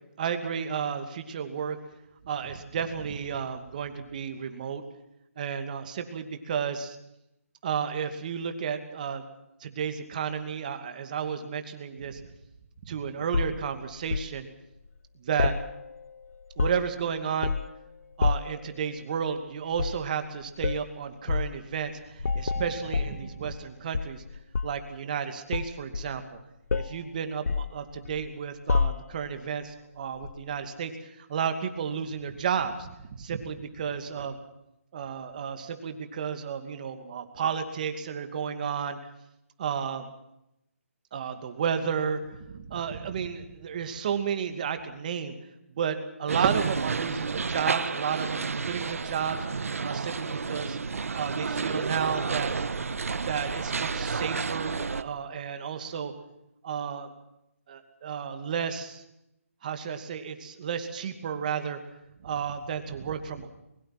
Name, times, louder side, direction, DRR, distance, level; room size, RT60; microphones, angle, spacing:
voice 1, 0.2-1.8 2.2-4.8 5.4-7.0 7.6-9.2 9.6-12.2 12.9-14.5 15.2-15.5 16.6-17.6 18.2-24.2 24.6-26.2 26.7-30.9 31.3-32.9 33.2-34.3 34.9-39.0 39.6-40.1 41.1-45.3 45.8-49.4 49.8-50.8 51.1-52.6 53.1-56.1 56.6-57.1 57.7-59.0 59.6-61.8 62.2-63.5, right 7 dB, 35° right, 8 dB, 2.5 m, -32 dB
sound 1, 13.3-14.3 15.4-16.1 16.4-17.0 17.4-17.8 18.2-18.6 19.7-20.0 20.6-20.9 21.3-21.5 22.2-23.7 23.9-24.9 25.5-26.4 26.7-27.0 27.5-28.3 28.7-29.3 30.2-30.4, left 4 dB, 85° left, 0.7 m, -29 dB
sound 2, 46.3-55.0, right 4 dB, 70° right, 1.5 m, -31 dB
22.5 x 22.5 x 6.1 m, 0.83 s
hypercardioid pair, 165°, 8 cm